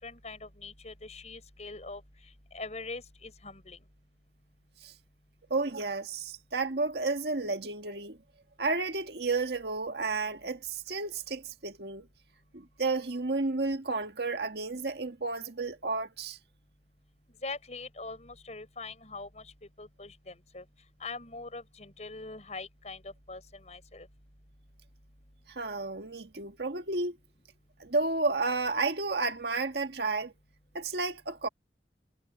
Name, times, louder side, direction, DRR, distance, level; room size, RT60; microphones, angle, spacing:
voice 1, 0.0-2.0 2.5-3.8 17.4-19.5 19.8-20.6 21.0-24.1, left 3 dB, 40° left, 6.2 m, -42 dB
voice 2, 5.5-8.2 8.6-12.1 12.5-16.4 25.5-27.2 27.8-30.3 30.7-31.5, right 3 dB, 65° right, 1.7 m, -32 dB
head